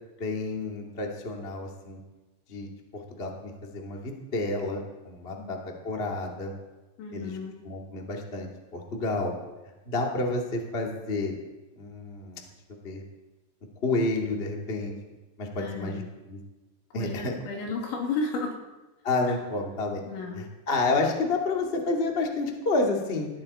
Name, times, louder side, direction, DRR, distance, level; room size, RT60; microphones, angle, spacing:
voice 1, 0.2-2.0 2.5-5.6 5.8-6.5 7.1-7.3 7.6-9.3 9.8-11.3 11.8-12.4 12.8-13.0 13.8-14.9 15.4-16.4 16.9-17.3 19.0-20.0 20.3-23.3, left 2 dB, 60° left, 0 dB, 0.6 m, -30 dB
voice 2, 7.0-7.6 15.6-16.1 16.9-18.5 20.1-20.5, left 3 dB, 80° left, 0 dB, 4.8 m, -33 dB
19.5 x 14.5 x 4.3 m, 1.1 s
omnidirectional pair, 5.3 m